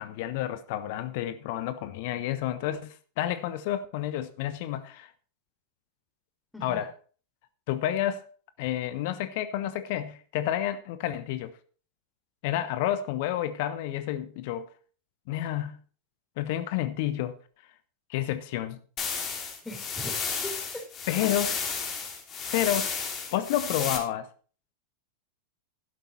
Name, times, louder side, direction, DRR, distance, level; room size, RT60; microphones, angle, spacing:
voice 1, 0.0-5.1 6.6-6.9 7.7-8.3 8.6-11.5 12.4-14.7 15.3-15.8 16.4-17.4 18.1-18.8 21.1-21.6 22.5-22.9 23.3-24.3, left 12 dB, 50° left, 1.1 m, -30 dB
sound 1, 19.0-24.0, left 6 dB, 30° left, 3.3 m, -32 dB
voice 2, 19.6-20.8, left 1 dB, 5° left, 3.8 m, -40 dB
12.0 x 10.5 x 4.1 m
figure-of-eight pair, 90°, 0 cm